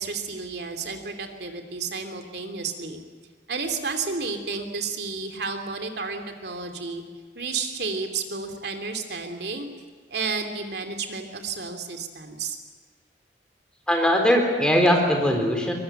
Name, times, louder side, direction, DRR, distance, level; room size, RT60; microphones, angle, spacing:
voice 1, 0.0-3.0 3.5-7.0 7.3-9.7 10.1-12.6, right 4 dB, 60° right, 5 dB, 3.0 m, -31 dB
voice 2, 13.9-15.7, equal, 5° left, 2 dB, 3.8 m, -20 dB
24.0 x 21.0 x 9.0 m, 1.4 s
head